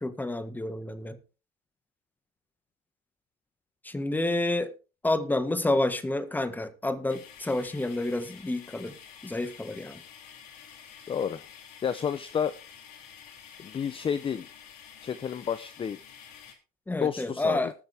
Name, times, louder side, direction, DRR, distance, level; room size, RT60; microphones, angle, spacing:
voice 1, 0.0-1.2 3.8-4.7 5.0-8.9 9.2-10.0 16.9-17.7, left 2 dB, 10° left, 1.6 m, -29 dB
sound 1, 7.1-16.5, left 8 dB, 80° left, 3.5 m, -49 dB
voice 2, 11.1-11.4 11.8-12.6 13.6-14.5 15.0-16.0 17.0-17.7, left 7 dB, 30° left, 0.7 m, -30 dB
20.0 x 6.9 x 3.5 m
supercardioid pair, 110°, 19 cm